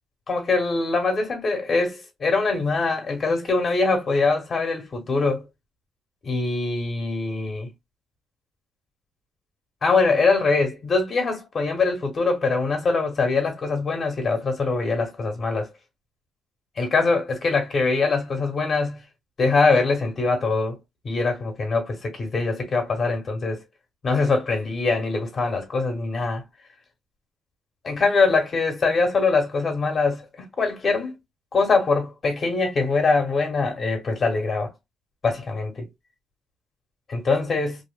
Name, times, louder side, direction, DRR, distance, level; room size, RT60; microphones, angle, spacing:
voice 1, 0.3-5.5 6.2-7.7 9.8-15.7 16.8-19.0 19.4-20.8 21.0-23.6 24.0-26.4 27.9-31.1 31.5-34.7 35.2-35.9 37.1-37.8, left 3 dB, 45° left, 1.1 m, -23 dB
2.8 x 2.4 x 2.2 m
cardioid pair, 90°, 0 cm